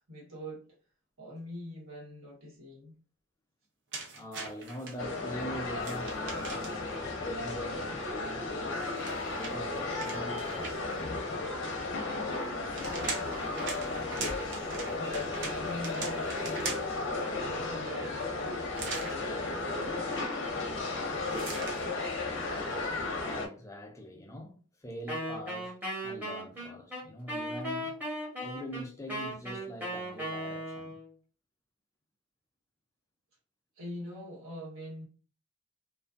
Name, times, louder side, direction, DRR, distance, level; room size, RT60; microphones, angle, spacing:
voice 1, 0.1-0.8 1.2-3.0 13.9-16.8 17.1-18.7 19.0-22.1 33.7-35.1, equal, 85° right, 1.4 m, -45 dB
sound 1, 3.9-4.9 5.8-6.9 8.7-11.0 12.4-17.0 18.7-19.2 21.3-21.8, right 3 dB, 60° right, 0.6 m, -40 dB
voice 2, 4.1-8.9 9.3-11.3 23.1-28.0 28.4-31.0, equal, 15° left, 0.4 m, -44 dB
sound 2, 5.0-23.5, left 3 dB, 60° left, 0.6 m, -34 dB
Wind instrument woodwind instrument, 25.1-31.1, equal, 10° right, 0.9 m, -37 dB
2.4 x 2.3 x 2.4 m
head